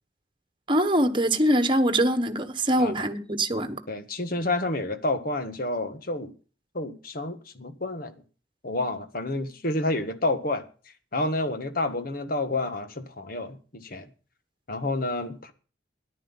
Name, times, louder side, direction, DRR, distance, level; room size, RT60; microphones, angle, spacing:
voice 1, 0.7-3.8, right 1 dB, 25° right, 1.3 m, -23 dB
voice 2, 3.9-6.3 6.7-8.1 8.6-10.6 11.1-14.1 14.7-15.5, left 2 dB, 55° left, 1.6 m, -29 dB
13.5 x 11.0 x 5.6 m
head